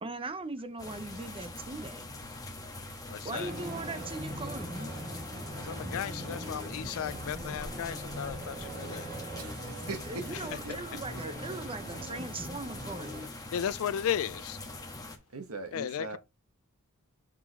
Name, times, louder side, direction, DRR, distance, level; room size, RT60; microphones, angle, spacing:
voice 1, 0.0-2.0 3.2-4.9 10.1-13.1, right 3 dB, 25° right, 0.8 m, -39 dB
sound 1, 0.8-15.2, left 2 dB, 15° left, 1.3 m, -43 dB
voice 2, 3.1-3.5 5.7-9.1 13.5-14.6 15.7-16.2, left 9 dB, 65° left, 0.4 m, -35 dB
sound 2, 3.3-13.3, equal, 45° right, 2.1 m, -42 dB
voice 3, 9.4-10.2 10.6-10.7 11.5-11.6 15.3-16.2, right 3 dB, 75° right, 1.4 m, -40 dB
5.5 x 4.8 x 4.2 m
head